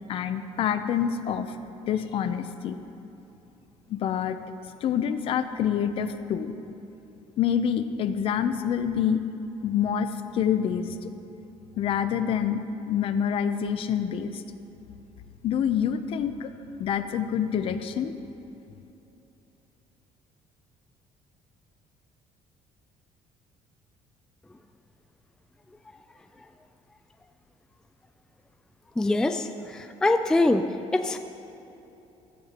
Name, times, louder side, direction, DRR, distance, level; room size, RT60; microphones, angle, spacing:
voice 1, 0.1-1.6 1.9-2.8 3.9-4.4 4.8-6.6 7.4-9.2 9.6-11.1 11.8-14.4 15.4-16.5 16.8-18.1, left 8 dB, 50° left, 10 dB, 0.6 m, -27 dB
voice 2, 29.0-30.6 30.9-31.2, left 2 dB, 5° left, 7 dB, 0.3 m, -23 dB
16.0 x 13.0 x 2.9 m, 3.0 s
cardioid pair, 150°, 12 cm